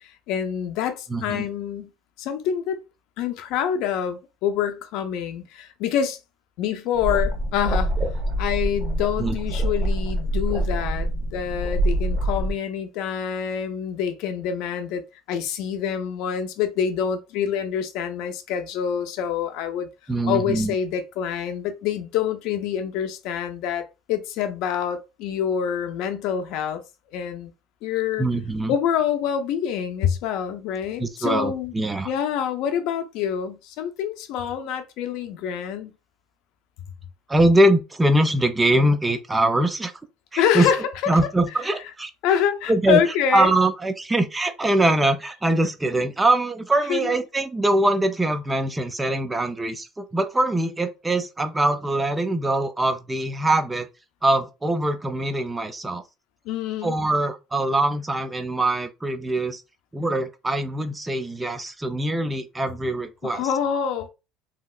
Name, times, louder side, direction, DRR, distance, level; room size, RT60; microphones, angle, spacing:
voice 1, 0.0-1.9 2.2-2.8 3.2-6.2 6.6-7.9 8.4-15.0 15.3-19.9 20.3-26.8 27.1-27.5 27.8-28.3 28.7-31.7 32.0-35.9 40.4-41.1 42.2-43.5 46.9-47.2 56.5-56.9 63.2-64.1, left 8 dB, 65° left, 0.5 m, -26 dB
voice 2, 1.1-1.5 9.2-9.4 20.1-20.7 28.2-28.7 31.0-32.1 37.3-39.9 40.3-40.7 41.1-42.1 42.7-43.0 43.3-53.9 54.2-56.0 56.8-59.6 59.9-63.5, right 1 dB, 10° right, 0.3 m, -22 dB
sound 1, 6.9-12.5, right 1 dB, 35° right, 1.1 m, -25 dB
3.0 x 2.8 x 2.3 m
cardioid pair, 145°, 0 cm